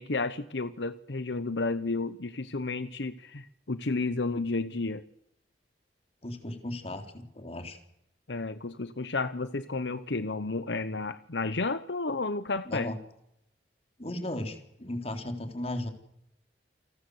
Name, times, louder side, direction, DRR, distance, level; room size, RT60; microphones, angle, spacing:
voice 1, 0.0-5.0 8.3-12.9, left 3 dB, 80° left, 13 dB, 1.1 m, -32 dB
voice 2, 6.2-7.8 12.6-13.0 14.0-15.9, left 1 dB, 35° left, 6 dB, 4.0 m, -36 dB
29.5 x 19.0 x 8.1 m, 0.80 s
head